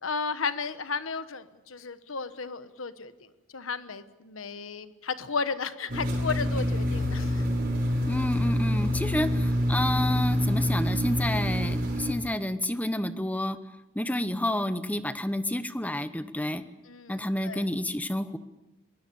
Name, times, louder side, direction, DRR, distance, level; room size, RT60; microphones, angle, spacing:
voice 1, 0.0-3.1 3.5-7.5 16.9-17.6, left 4 dB, 90° left, 12 dB, 1.2 m, -34 dB
sound 1, 5.9-12.1, left 1 dB, 45° right, 6.4 m, -26 dB
voice 2, 8.1-13.6 13.9-16.6 17.1-18.4, left 1 dB, 10° left, 12 dB, 0.9 m, -29 dB
23.5 x 20.0 x 7.0 m, 1.0 s
head